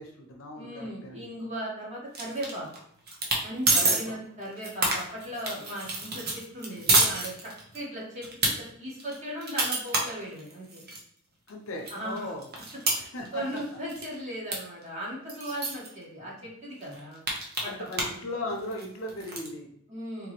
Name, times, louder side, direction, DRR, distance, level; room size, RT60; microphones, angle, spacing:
voice 1, 0.0-1.3 3.7-4.0 11.5-12.5 12.9-13.4 17.6-19.7, left 2 dB, 70° left, 1 dB, 0.8 m, -37 dB
voice 2, 0.5-2.7 3.4-10.8 11.9-12.3 13.3-17.2 17.6-17.9 19.9-20.3, equal, 35° right, -6 dB, 1.5 m, -37 dB
sound 1, 2.1-2.8 3.1-3.4 3.7-4.0 4.4-7.8 8.2-8.5 9.0-11.0 11.5-11.6 11.9-13.6 13.9-14.1 14.5-14.6 14.8-14.9 15.3-15.9 16.4-16.5 16.8-18.2 18.5-19.5, right 2 dB, 50° right, 0.9 m, -27 dB
3.6 x 3.0 x 3.0 m, 0.70 s
head